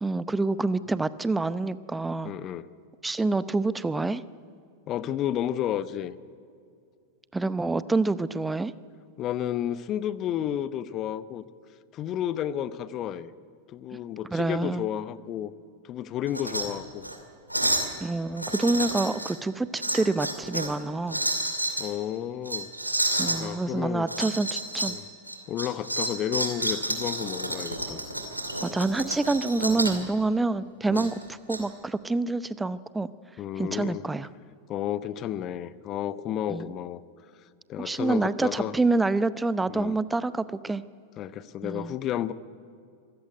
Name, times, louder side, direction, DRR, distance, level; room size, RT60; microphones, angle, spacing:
voice 1, 0.0-2.3 3.0-4.2 7.3-8.7 13.9-14.0 14.3-14.9 18.0-21.2 23.2-24.9 28.6-33.1 33.6-34.3 36.5-36.7 37.8-40.8 41.6-41.9, right 3 dB, 10° right, 16 dB, 0.7 m, -27 dB
voice 2, 2.2-2.7 4.9-6.2 9.2-11.4 11.9-13.3 13.7-15.5 15.8-17.1 21.8-22.7 23.4-24.1 24.9-25.1 25.5-28.0 30.9-31.1 33.4-34.0 34.7-37.0 37.7-38.7 39.7-40.0 41.2-42.3, left 11 dB, 35° left, 16 dB, 0.9 m, -31 dB
sound 1, 16.3-16.6 17.0-17.2 17.5-17.9 18.4-19.3 19.8-20.7 21.1-21.9 22.5-23.4 24.1-25.0 25.3-30.0 30.9-31.6, right 1 dB, 85° right, 2.5 m, -30 dB
25.0 x 15.0 x 9.5 m, 2.4 s
figure-of-eight pair, 90°, 0 cm